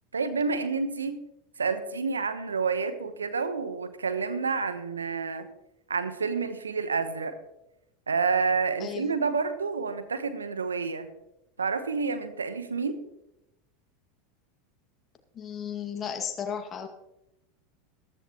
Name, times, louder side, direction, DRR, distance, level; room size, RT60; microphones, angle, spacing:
voice 1, 0.1-1.3 1.6-5.5 5.9-7.4 8.1-11.1 11.6-13.0, right 5 dB, 85° right, 10 dB, 1.0 m, -29 dB
voice 2, 8.8-9.1 15.3-16.9, left 7 dB, 30° left, 5 dB, 2.1 m, -34 dB
14.0 x 14.0 x 3.0 m, 0.89 s
figure-of-eight pair, 85°, 0 cm